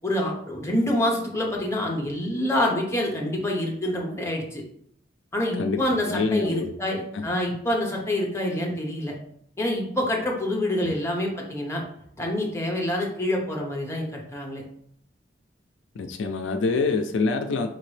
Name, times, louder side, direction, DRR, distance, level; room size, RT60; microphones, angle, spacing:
voice 1, 0.0-4.6 5.3-9.1 9.6-11.8 12.2-14.6, left 1 dB, 15° left, 0 dB, 0.9 m, -26 dB
voice 2, 5.5-6.7 7.1-7.3 10.8-10.9 16.0-17.7, left 4 dB, 70° left, 6 dB, 0.4 m, -26 dB
4.9 x 2.9 x 3.2 m, 0.68 s
head